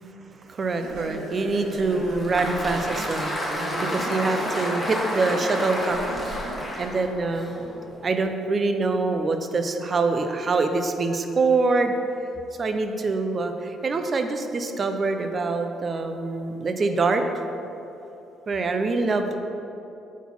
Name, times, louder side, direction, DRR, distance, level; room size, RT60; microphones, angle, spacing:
voice 1, 0.4-6.4 6.8-7.5 8.0-12.0 12.6-17.4 18.5-19.4, right 3 dB, 40° right, 6 dB, 0.5 m, -25 dB
sound 1, 0.8-6.6, right 2 dB, 75° right, 1.0 m, -36 dB
Applause, 1.9-8.2, equal, 15° left, 1.4 m, -31 dB
4.2 x 4.1 x 5.5 m, 2.9 s
supercardioid pair, 60°, 0 cm